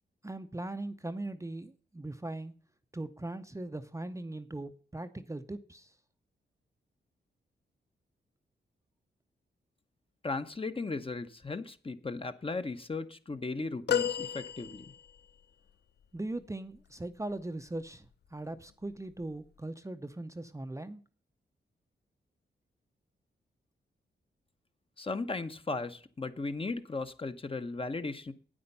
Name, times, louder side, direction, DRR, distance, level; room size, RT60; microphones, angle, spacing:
voice 1, 0.2-2.5 2.9-5.9 16.1-21.0, right 2 dB, 15° right, 9 dB, 0.7 m, -40 dB
voice 2, 10.2-14.9 25.0-28.3, left 3 dB, 30° left, 9 dB, 0.9 m, -36 dB
sound 1, 13.9-15.3 17.7-17.9 19.2-19.3, left 9 dB, 60° left, 0.5 m, -32 dB
8.7 x 8.6 x 5.5 m, 0.43 s
cardioid pair, 70°, 19 cm